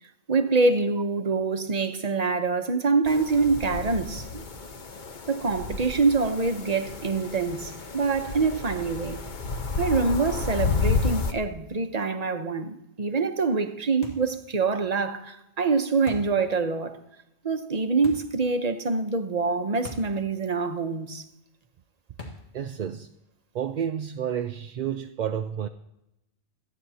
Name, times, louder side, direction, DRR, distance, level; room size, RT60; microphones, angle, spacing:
voice 1, 0.3-4.4 5.3-9.2 9.8-17.0 17.4-21.2, right 4 dB, 40° right, 1.0 m, -25 dB
sound 1, 3.1-11.3, left 4 dB, 45° left, 1.1 m, -31 dB
sound 2, 14.0-14.4 16.1-16.4 18.0-18.4 19.8-20.2 20.5-20.6 22.2-22.6, left 2 dB, 85° left, 1.9 m, -41 dB
voice 2, 22.5-23.1 23.5-25.7, right 8 dB, 55° right, 0.6 m, -30 dB
26.5 x 9.5 x 2.8 m
omnidirectional pair, 1.1 m